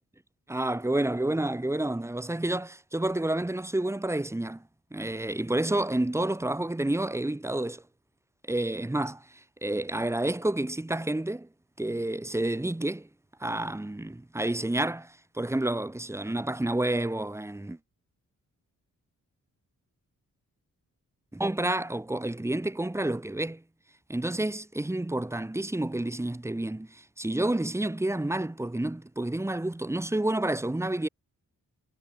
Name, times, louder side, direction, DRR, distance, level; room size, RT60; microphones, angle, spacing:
voice 1, 0.5-4.6 4.9-7.8 8.5-9.2 9.6-11.5 11.8-13.1 13.4-17.8 21.3-23.6 24.1-26.9 27.2-31.1, right 1 dB, 10° right, 1.1 m, -29 dB
wide cardioid pair, 130°, 33 cm